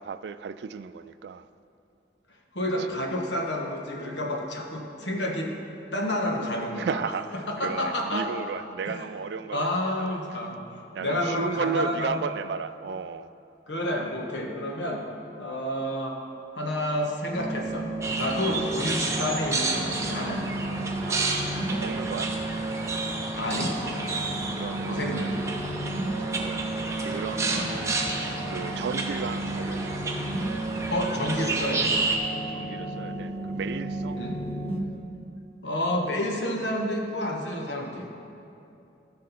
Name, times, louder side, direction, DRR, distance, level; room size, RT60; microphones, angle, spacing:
voice 1, 0.0-1.5 2.9-3.0 6.8-9.7 10.9-13.3 18.5-18.7 21.1-22.3 24.6-25.4 26.1-26.6 27.0-28.0 28.5-30.2 32.5-34.2, right 6 dB, 70° right, 14 dB, 0.3 m, -34 dB
voice 2, 2.5-5.5 5.9-7.0 7.5-8.3 8.8-9.1 9.5-10.6 11.0-12.2 13.7-15.0 15.4-16.2 16.5-17.9 18.2-20.5 23.4-23.7 24.8-25.4 27.5-27.7 30.9-31.9 34.2-34.4 35.6-38.1, left 1 dB, 80° left, 1 dB, 1.3 m, -29 dB
sound 1, 17.3-34.8, right 2 dB, 30° left, 1.1 m, -33 dB
sound 2, 18.0-32.2, right 3 dB, 15° right, 0.7 m, -31 dB
15.0 x 6.4 x 4.2 m, 2.7 s
head